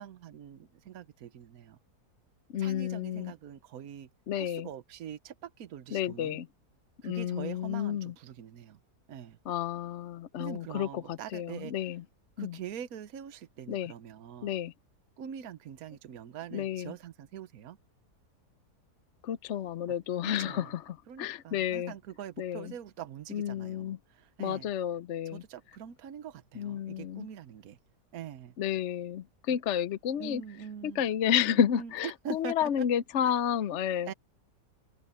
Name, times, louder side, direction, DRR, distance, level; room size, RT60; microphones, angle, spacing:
voice 1, 0.0-1.8 2.6-4.1 4.3-6.4 7.0-8.8 9.1-9.4 10.4-11.9 12.4-14.5 15.2-17.8 20.2-20.7 21.1-24.7 25.3-27.8 28.1-28.5 29.5-29.6 30.2-31.9 32.2-32.9 34.1-34.2, right 8 dB, 65° right, 1.4 m, -44 dB
voice 2, 2.5-3.3 4.3-4.7 5.9-6.5 7.0-8.1 9.5-12.0 12.4-12.6 13.7-13.9 14.4-14.7 16.5-16.9 19.2-21.9 22.4-22.7 23.3-24.0 24.4-25.4 26.6-27.3 28.6-30.4 30.8-34.1, left 9 dB, 60° left, 0.8 m, -31 dB
open air
omnidirectional pair, 1.7 m